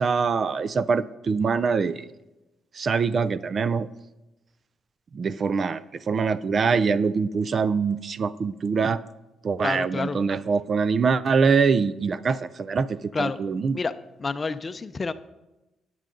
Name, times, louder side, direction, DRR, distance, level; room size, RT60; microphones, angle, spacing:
voice 1, 0.0-2.1 2.7-3.9 5.1-5.8 6.1-9.0 9.4-13.8, right 5 dB, 45° right, 16 dB, 0.4 m, -24 dB
voice 2, 9.6-10.2 13.1-13.9 14.2-15.1, left 4 dB, 30° left, 12 dB, 0.5 m, -29 dB
13.0 x 9.3 x 3.8 m, 1.0 s
cardioid pair, 90°, 0 cm